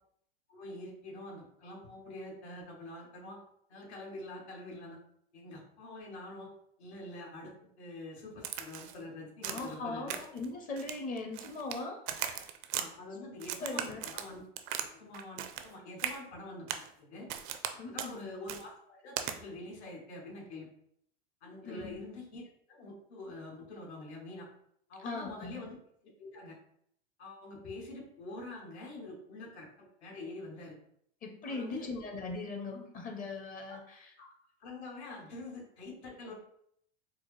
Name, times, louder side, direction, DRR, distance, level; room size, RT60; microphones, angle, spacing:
voice 1, 0.5-3.4 3.7-5.0 5.3-6.5 6.8-10.2 12.1-12.2 12.7-14.4 14.9-17.3 17.9-20.7 21.4-22.4 22.7-24.5 24.9-25.8 26.0-26.6 27.2-30.8 31.5-31.9 33.7-33.8 34.2-34.3 34.6-36.4, left 2 dB, 80° left, -1 dB, 1.4 m, -46 dB
Crack, 8.4-9.0 9.4-9.8 10.1-10.5 10.8-11.8 12.1-12.9 13.4-14.9 15.1-15.7 16.0-16.2 16.7-16.9 17.3-17.7 18.0-18.1 18.5-18.6 19.2-19.4, right 10 dB, 50° right, 0.4 m, -38 dB
voice 2, 9.4-12.5 13.6-14.0 17.8-18.3 21.6-22.0 25.0-25.7 31.2-34.1 36.3-36.4, left 3 dB, 25° left, 3 dB, 0.6 m, -40 dB
4.4 x 2.0 x 3.1 m, 0.70 s
supercardioid pair, 120°, 32 cm